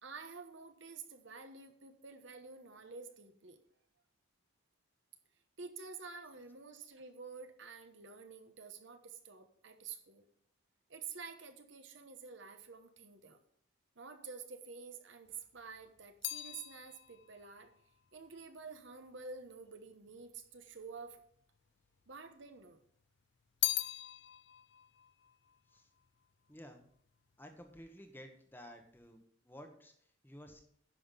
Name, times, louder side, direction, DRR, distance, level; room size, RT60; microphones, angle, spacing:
voice 1, 0.0-3.6 5.6-10.2 10.9-13.4 14.0-17.7 18.1-21.2 22.1-22.8, right 5 dB, 60° right, 7 dB, 1.1 m, -49 dB
sound 1, 15.3-19.7 20.5-21.3 21.6-22.7 23.0-26.6 26.8-27.4, left 16 dB, 55° left, 0.4 m, -42 dB
voice 2, 26.5-26.8 27.4-30.6, equal, 10° left, 5 dB, 1.1 m, -53 dB
10.5 x 5.8 x 5.6 m, 0.65 s
head